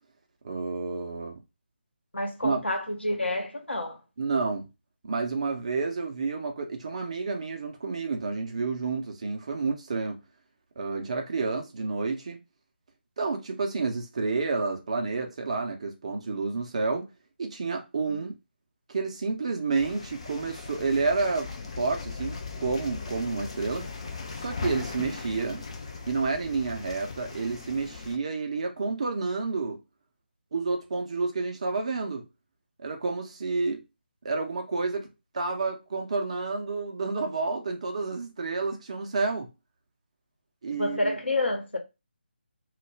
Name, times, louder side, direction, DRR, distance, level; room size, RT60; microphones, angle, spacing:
voice 1, 0.4-1.4 2.4-2.6 4.2-4.7 5.0-10.2 10.8-12.4 13.2-17.1 17.4-18.3 18.9-21.5 21.8-23.9 24.4-25.6 26.1-29.8 30.5-32.2 32.8-33.8 34.2-35.1 35.3-39.5 40.6-41.2, right 4 dB, 35° right, 0.6 m, -30 dB
voice 2, 2.1-4.0 18.1-18.2 40.7-41.8, left 1 dB, 80° left, 0.9 m, -29 dB
sound 1, 19.7-28.2, left 4 dB, 30° left, 0.4 m, -39 dB
2.3 x 2.1 x 3.2 m
figure-of-eight pair, 155°, 6 cm